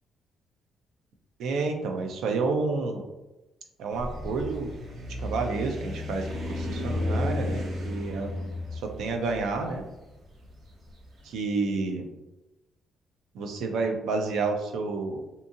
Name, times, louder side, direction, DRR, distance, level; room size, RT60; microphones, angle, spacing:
voice 1, 1.4-3.1 3.8-4.7 5.2-8.3 8.7-9.8 11.2-12.1 13.3-15.2, right 3 dB, 80° right, 4 dB, 0.4 m, -30 dB
sound 1, 3.9-11.1, left 1 dB, 65° right, 0.9 m, -33 dB
2.7 x 2.7 x 2.5 m, 0.99 s
cardioid pair, 90°, 0 cm